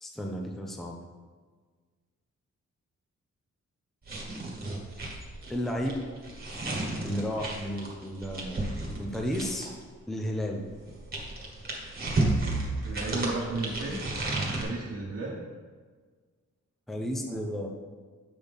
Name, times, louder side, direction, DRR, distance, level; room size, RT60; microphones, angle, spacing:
voice 1, 0.0-1.0 5.5-6.1 7.0-8.7 9.0-9.7 10.1-10.7 11.1-11.2 16.9-17.7, equal, ahead, 1 dB, 0.6 m, -33 dB
sound 1, 4.0-9.8 10.7-14.6, right 2 dB, 30° right, 1.5 m, -32 dB
voice 2, 12.8-14.0 14.4-15.4 17.3-17.4, right 2 dB, 50° right, -6 dB, 1.1 m, -34 dB
8.2 x 6.0 x 3.5 m, 1.5 s
wide cardioid pair, 165°, 30 cm